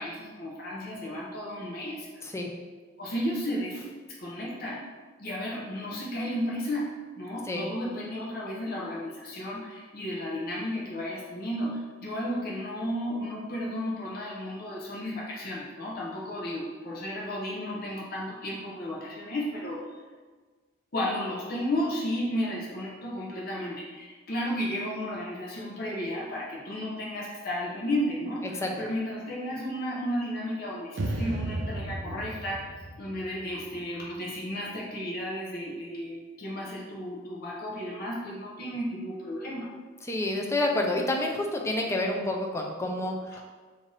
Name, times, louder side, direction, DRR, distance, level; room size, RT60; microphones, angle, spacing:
voice 1, 0.0-2.1 3.0-3.9 4.2-4.8 5.2-6.9 7.2-19.8 20.9-39.7 43.3-43.4, equal, 50° left, -5 dB, 0.7 m, -33 dB
sound 1, 31.0-34.2, right 1 dB, 65° right, 0.5 m, -34 dB
voice 2, 40.0-43.4, left 1 dB, 15° left, 1 dB, 0.4 m, -29 dB
3.4 x 2.6 x 3.9 m, 1.4 s
head